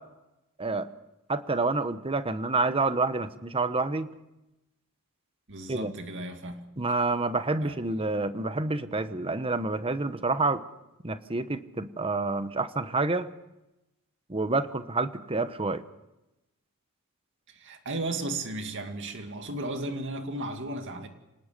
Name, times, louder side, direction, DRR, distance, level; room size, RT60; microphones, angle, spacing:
voice 1, 1.3-4.1 5.7-5.9 6.8-10.6 11.0-13.3 14.3-15.8, right 3 dB, 25° right, 1.0 m, -28 dB
voice 2, 5.5-6.6 7.6-7.8 17.5-21.1, right 2 dB, 55° right, 2.3 m, -35 dB
26.5 x 19.0 x 6.8 m
head